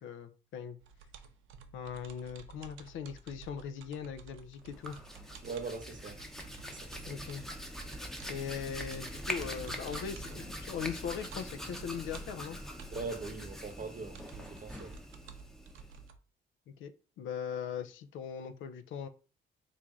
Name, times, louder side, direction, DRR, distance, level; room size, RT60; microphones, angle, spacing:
voice 1, 0.0-0.8 1.7-5.0 7.1-7.4 8.3-12.6 16.8-16.9 17.2-19.1, left 7 dB, 80° left, 0.5 m, -40 dB
sound 1, 0.8-16.2, right 6 dB, 85° right, 0.5 m, -53 dB
Hands, 4.7-16.1, equal, ahead, 0.7 m, -43 dB
voice 2, 5.4-6.2 6.7-7.2 12.9-14.9, right 4 dB, 40° right, 0.8 m, -41 dB
3.2 x 2.5 x 3.5 m
cardioid pair, 90°, 20 cm